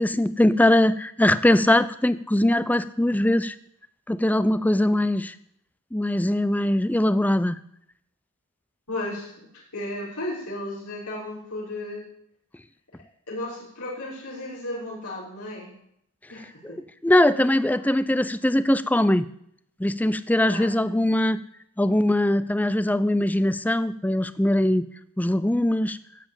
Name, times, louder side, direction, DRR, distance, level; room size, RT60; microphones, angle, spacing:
voice 1, 0.0-3.6 4.1-5.4 5.9-7.6 16.6-19.3 19.8-21.4 21.8-24.9 25.2-26.0, left 1 dB, 5° left, 15 dB, 0.4 m, -21 dB
voice 2, 8.9-9.3 9.7-12.1 13.3-15.7 16.3-16.8 20.4-20.8, left 1 dB, 85° left, -7 dB, 5.9 m, -34 dB
14.0 x 7.7 x 8.8 m, 0.72 s
head